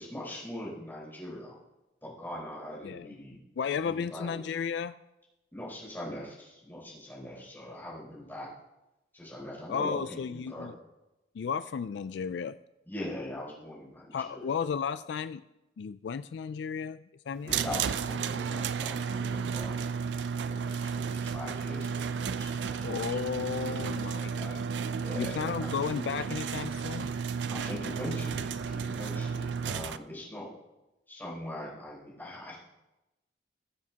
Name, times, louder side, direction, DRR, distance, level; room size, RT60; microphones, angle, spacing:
voice 1, 0.0-1.6 2.0-3.4 3.8-4.4 5.5-8.5 9.1-10.7 12.9-14.6 17.4-19.8 20.4-20.6 20.8-22.9 23.6-24.5 24.9-25.7 27.5-30.5 31.1-32.5, left 1 dB, 10° left, -6 dB, 4.3 m, -41 dB
voice 2, 3.6-4.9 9.7-10.7 11.3-12.6 14.1-15.4 15.8-17.7 22.8-24.6 25.2-27.1, left 6 dB, 75° left, 14 dB, 0.3 m, -34 dB
sound 1, 17.5-30.0, right 6 dB, 80° right, 0.4 m, -33 dB
20.0 x 7.3 x 2.9 m, 0.95 s
head